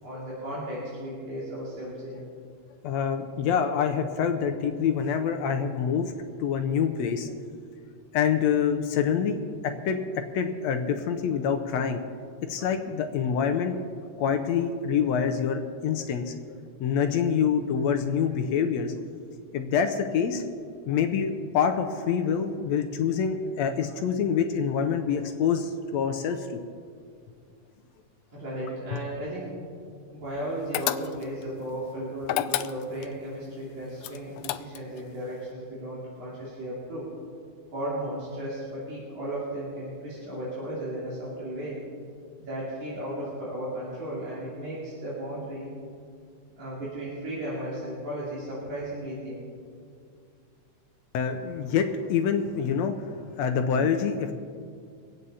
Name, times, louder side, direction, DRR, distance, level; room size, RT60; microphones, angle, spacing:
voice 1, 0.0-2.2 28.3-29.5 30.1-37.1 37.7-41.8 42.5-45.7 46.6-49.4, right 1 dB, 75° right, -8 dB, 4.4 m, -35 dB
voice 2, 2.8-6.1 6.4-7.3 8.1-12.0 12.4-13.8 14.0-16.4 16.8-18.9 19.5-20.4 20.9-26.6 51.1-54.3, left 7 dB, 75° left, 6 dB, 1.8 m, -26 dB
sound 1, 30.7-31.4 32.2-33.1 34.0-35.0, left 13 dB, 90° left, 1.4 m, -30 dB
24.5 x 8.9 x 4.2 m, 2.2 s
omnidirectional pair, 3.5 m